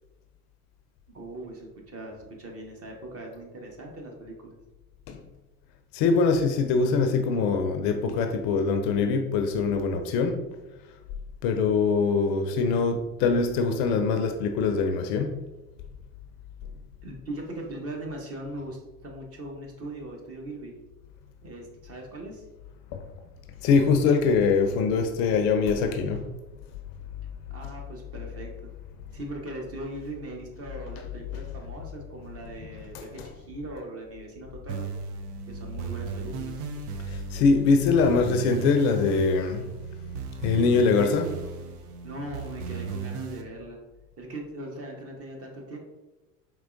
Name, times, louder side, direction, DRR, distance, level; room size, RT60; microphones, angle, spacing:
voice 1, 1.1-4.6 17.0-20.7 21.4-22.4 27.5-28.7 29.1-34.9 35.5-36.6 42.0-43.8 44.2-45.8, right 1 dB, 30° right, 0.9 m, -40 dB
voice 2, 5.9-10.4 11.4-15.4 22.9-23.0 23.6-26.3 32.9-33.3 37.0-39.7 40.4-41.4, left 4 dB, 50° left, 0.5 m, -23 dB
sound 1, 34.7-43.4, right 5 dB, 70° right, 0.6 m, -36 dB
4.4 x 3.0 x 2.5 m
hypercardioid pair, 80°, 47 cm